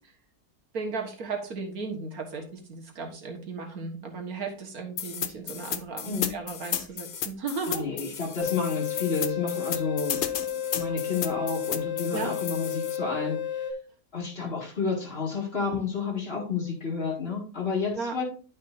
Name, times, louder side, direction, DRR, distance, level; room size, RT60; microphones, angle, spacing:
voice 1, 0.7-7.8 12.1-12.3 17.9-18.2, right 4 dB, 90° right, 2 dB, 2.0 m, -35 dB
sound 1, 5.0-13.0, left 8 dB, 60° left, 0.5 m, -34 dB
voice 2, 7.7-13.4 14.1-18.2, left 4 dB, 40° left, -1 dB, 2.4 m, -30 dB
sound 2, 8.4-13.7, left 10 dB, 85° left, 1.4 m, -32 dB
11.5 x 5.4 x 2.6 m, 0.40 s
omnidirectional pair, 1.5 m